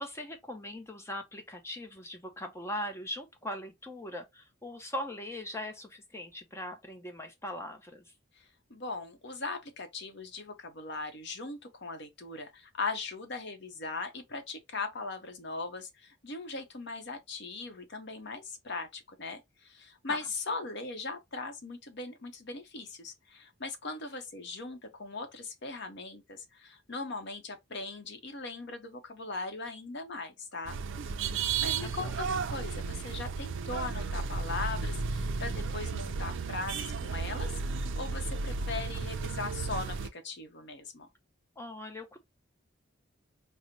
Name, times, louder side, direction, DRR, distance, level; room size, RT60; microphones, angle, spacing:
voice 1, 0.0-8.1 20.1-20.2 31.1-32.1 41.6-42.2, left 1 dB, 10° left, 0.6 m, -40 dB
voice 2, 8.4-30.8 31.3-41.1, left 3 dB, 55° left, 0.8 m, -39 dB
sound 1, 30.7-40.1, right 4 dB, 60° right, 0.4 m, -34 dB
5.1 x 2.1 x 2.7 m
head